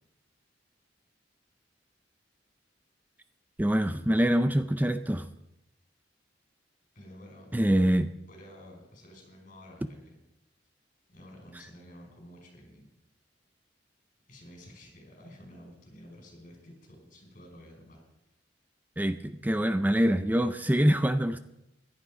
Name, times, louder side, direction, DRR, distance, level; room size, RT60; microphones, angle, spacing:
voice 1, 3.6-5.3 7.5-8.1 19.0-21.4, equal, 10° right, 11 dB, 0.4 m, -25 dB
voice 2, 6.9-7.9 8.2-10.2 11.1-12.9 14.3-18.0, equal, 45° left, 1 dB, 5.1 m, -51 dB
15.5 x 11.5 x 5.1 m, 0.85 s
head